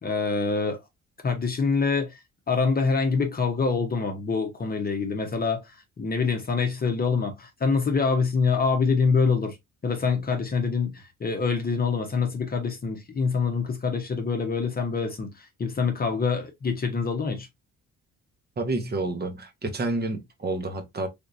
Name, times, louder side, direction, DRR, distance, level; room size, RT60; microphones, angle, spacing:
voice 1, 0.0-0.8 1.2-2.2 2.5-9.6 9.8-17.5, left 5 dB, 30° left, 0.8 m, -25 dB
voice 2, 18.6-21.1, right 2 dB, 35° right, 0.9 m, -29 dB
3.5 x 2.8 x 2.5 m
cardioid pair, 90°, 30 cm